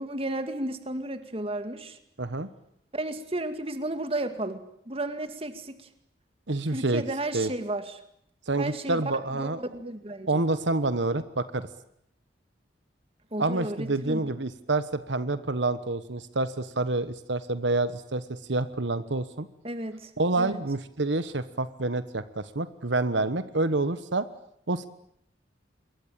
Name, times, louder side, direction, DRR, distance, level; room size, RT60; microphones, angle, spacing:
voice 1, 0.0-2.0 2.9-5.9 6.7-8.0 8.6-9.0 9.3-10.4 13.3-14.2 19.6-20.1 20.4-20.6, right 1 dB, 30° right, 9 dB, 2.3 m, -33 dB
voice 2, 2.2-2.5 6.5-7.0 7.3-7.5 8.5-9.6 10.3-11.7 13.4-18.2 18.5-19.5 20.2-24.2 24.7-24.9, right 2 dB, 80° right, 13 dB, 1.3 m, -28 dB
27.0 x 23.0 x 8.9 m, 0.72 s
head